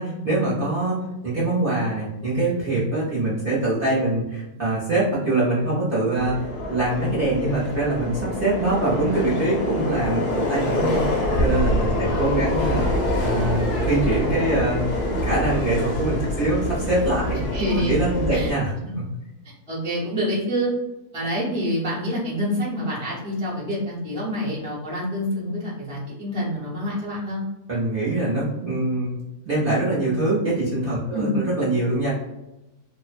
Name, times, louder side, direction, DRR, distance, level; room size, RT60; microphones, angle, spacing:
voice 1, 0.0-14.8 15.1-17.4 17.8-18.7 27.7-29.2 29.4-32.1, right 2 dB, 50° right, -8 dB, 0.7 m, -24 dB
Subway metro underground, 6.2-18.5, left 1 dB, 85° left, 1.1 m, -25 dB
voice 2, 12.0-12.7 17.5-17.9 18.3-18.5 18.8-18.9 19.7-20.7 21.1-27.4 31.1-31.4, equal, 5° left, -8 dB, 0.4 m, -27 dB
2.5 x 2.1 x 2.4 m, 0.94 s
omnidirectional pair, 1.6 m